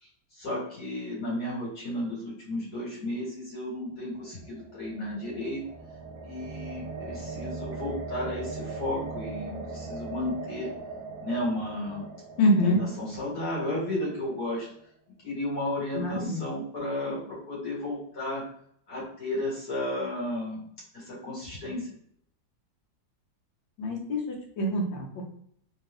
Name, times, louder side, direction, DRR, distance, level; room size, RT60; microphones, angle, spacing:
voice 1, 0.0-5.6 6.2-10.7 11.2-12.0 12.4-14.7 15.2-18.4 18.9-20.6 20.9-21.9, left 1 dB, 55° left, -5 dB, 2.1 m, -33 dB
sound 1, 4.2-14.4, right 3 dB, 65° right, 1.0 m, -40 dB
voice 2, 12.4-12.8 15.9-16.4 23.8-25.2, equal, 90° left, 1 dB, 1.7 m, -26 dB
4.0 x 2.8 x 3.3 m, 0.67 s
omnidirectional pair, 2.0 m